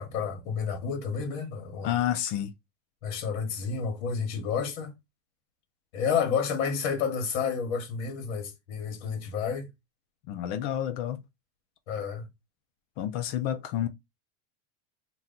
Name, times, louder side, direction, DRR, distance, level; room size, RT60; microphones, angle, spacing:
voice 1, 0.0-1.9 3.0-4.9 5.9-9.7 11.9-12.3, left 6 dB, 60° left, 1.2 m, -30 dB
voice 2, 1.8-2.5 10.3-11.2 13.0-13.9, left 11 dB, 45° left, 0.5 m, -29 dB
2.8 x 2.3 x 3.7 m
supercardioid pair, 150°, 38 cm